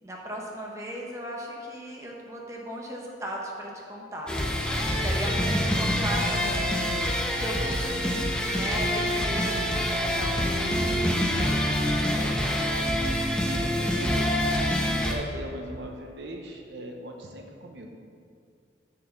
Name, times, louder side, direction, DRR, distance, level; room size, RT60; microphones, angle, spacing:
voice 1, 0.0-4.3 4.6-8.2 8.5-11.0 11.3-12.6, equal, 15° right, -2 dB, 1.2 m, -37 dB
sound 1, 4.3-15.1, equal, 5° left, 0.8 m, -26 dB
voice 2, 13.6-18.0, equal, 70° right, 2 dB, 0.9 m, -40 dB
6.9 x 6.5 x 6.9 m, 2.3 s
head